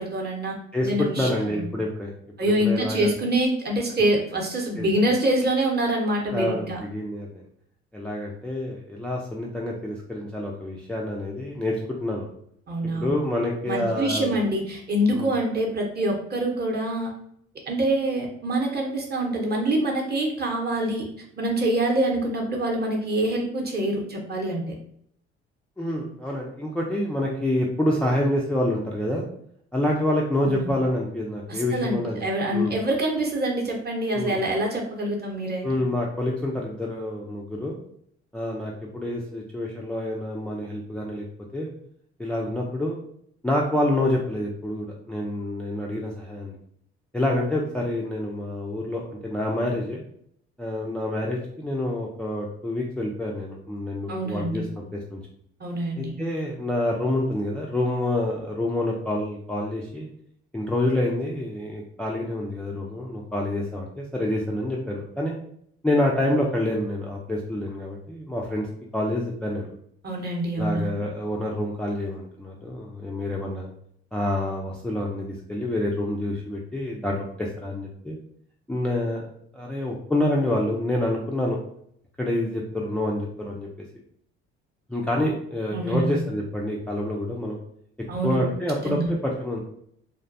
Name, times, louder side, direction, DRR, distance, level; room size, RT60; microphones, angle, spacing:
voice 1, 0.0-0.6 0.8-1.7 2.4-6.8 12.7-13.1 13.6-17.1 17.7-21.1 21.4-24.7 30.4-30.7 31.5-35.8 54.1-54.7 55.6-56.2 70.0-71.0 85.7-86.1 88.1-88.4 88.8-89.1, right 1 dB, 30° right, 0 dB, 0.9 m, -25 dB
voice 2, 0.7-2.1 2.4-3.1 4.8-4.9 6.3-7.4 7.9-11.8 12.0-12.3 12.9-14.3 15.1-15.3 25.8-29.3 29.7-32.2 32.5-32.8 34.1-34.4 35.6-37.8 38.3-41.2 41.5-41.7 42.2-43.0 43.4-46.6 47.1-50.0 50.6-54.7 54.9-55.2 56.0-60.1 60.5-65.3 65.8-68.7 68.9-69.7 70.6-73.7 74.1-78.2 78.7-79.3 79.5-81.6 82.2-83.7 84.9-87.6 88.2-89.6, left 1 dB, 5° left, -3 dB, 0.4 m, -27 dB
2.5 x 2.2 x 2.5 m, 0.68 s
hypercardioid pair, 55°, 32 cm